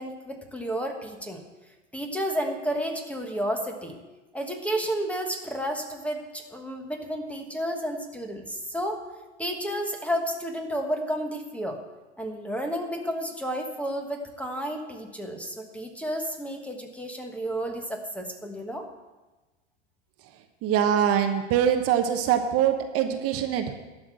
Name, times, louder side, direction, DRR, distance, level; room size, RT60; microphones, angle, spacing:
voice 1, 0.0-1.4 1.9-4.0 4.3-9.0 9.4-11.8 12.2-18.9, equal, 5° left, 4 dB, 1.3 m, -31 dB
voice 2, 20.6-23.7, right 9 dB, 40° right, 6 dB, 1.0 m, -23 dB
12.0 x 6.0 x 7.8 m, 1.2 s
hypercardioid pair, 105°, 36 cm